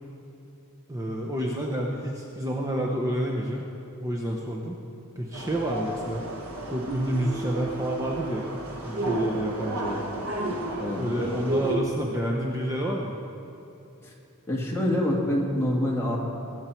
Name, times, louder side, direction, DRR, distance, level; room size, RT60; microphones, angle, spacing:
voice 1, 0.9-3.6 4.0-4.8 5.2-6.2 6.7-8.5 8.8-9.9 11.0-13.2, right 1 dB, 15° right, -2 dB, 0.9 m, -29 dB
sound 1, 5.3-11.8, right 1 dB, 90° right, 1.5 m, -32 dB
voice 2, 14.5-16.2, left 1 dB, 10° left, -3 dB, 1.9 m, -26 dB
21.5 x 8.7 x 4.5 m, 2.8 s
head